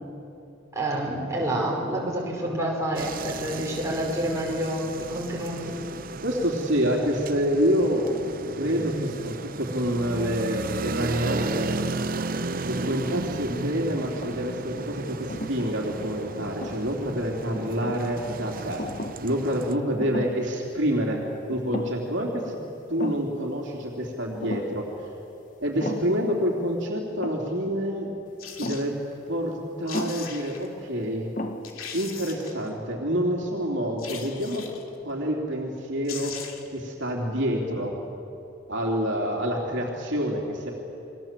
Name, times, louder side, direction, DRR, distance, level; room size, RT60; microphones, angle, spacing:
voice 1, 0.7-5.8, right 1 dB, 15° right, -3 dB, 5.2 m, -28 dB
sound 1, 3.0-19.7, right 3 dB, 45° right, 0.7 m, -34 dB
voice 2, 6.2-8.0 8.6-11.9 12.6-18.8 19.2-22.6 22.9-24.8 25.6-28.1 28.6-28.9 29.3-31.3 31.9-34.7 35.0-36.3 36.7-37.9 38.7-40.7, equal, 60° right, -1 dB, 3.4 m, -27 dB
sound 2, 12.9-13.5 14.0-14.7 15.3-15.6 16.4-17.1 17.5-18.1 18.8-19.3 19.6-19.7 20.0-20.5 20.8-21.0 21.5-22.2 22.4-22.5 23.0-23.4 24.4-24.8 25.8-26.3 27.2-27.6 28.6-29.0 29.9-30.3 31.0-31.1 31.4-31.8, left 1 dB, 40° left, 1.4 m, -35 dB
sound 3, 28.4-28.9 29.6-29.7 29.9-30.7 31.2-31.3 31.6-32.7 34.0-34.9 35.7-35.8 36.0-36.8 37.1-37.2, left 7 dB, 90° left, 2.7 m, -39 dB
28.5 x 22.5 x 7.7 m, 2.8 s
head